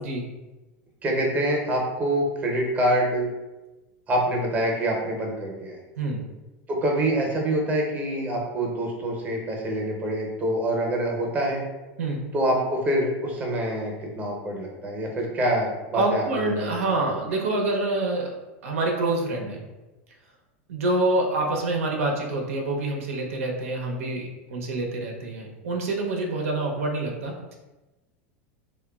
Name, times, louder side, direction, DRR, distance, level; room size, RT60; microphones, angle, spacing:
voice 1, 1.0-3.3 4.1-5.8 6.7-11.6 12.3-16.8 17.1-17.2, right 1 dB, 20° right, 0 dB, 0.6 m, -26 dB
voice 2, 15.9-18.3 18.6-19.6 20.7-27.6, right 2 dB, 90° right, 1 dB, 0.5 m, -26 dB
2.9 x 2.2 x 2.2 m, 1.1 s
supercardioid pair, 120°, 7 cm